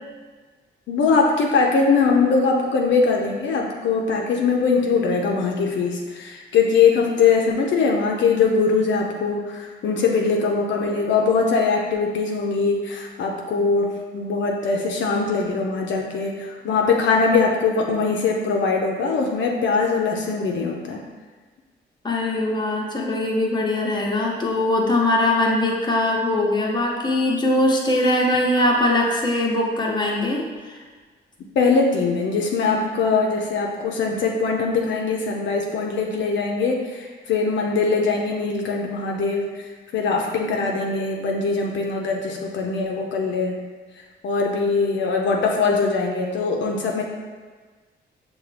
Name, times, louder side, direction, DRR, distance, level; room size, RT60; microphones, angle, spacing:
voice 1, 0.9-21.0 31.6-43.6 44.2-47.0, left 4 dB, 70° left, 0 dB, 0.5 m, -21 dB
voice 2, 22.0-30.8, left 1 dB, 20° left, -2 dB, 0.8 m, -21 dB
5.7 x 2.2 x 3.2 m, 1.4 s
cardioid pair, 80°, 20 cm